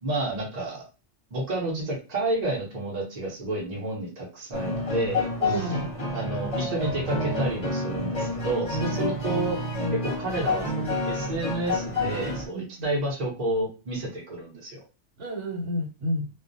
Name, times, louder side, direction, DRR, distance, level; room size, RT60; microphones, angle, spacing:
voice 1, 0.0-0.8 1.3-5.7 6.1-9.6 9.9-14.8, right 2 dB, 40° right, -4 dB, 0.8 m, -30 dB
sound 1, 4.5-12.5, left 2 dB, 35° left, 0.7 m, -29 dB
voice 2, 5.4-5.9 9.7-10.0 12.5-12.9 15.2-16.3, equal, 80° right, -3 dB, 1.0 m, -30 dB
2.4 x 2.0 x 2.5 m, 0.32 s
omnidirectional pair, 1.2 m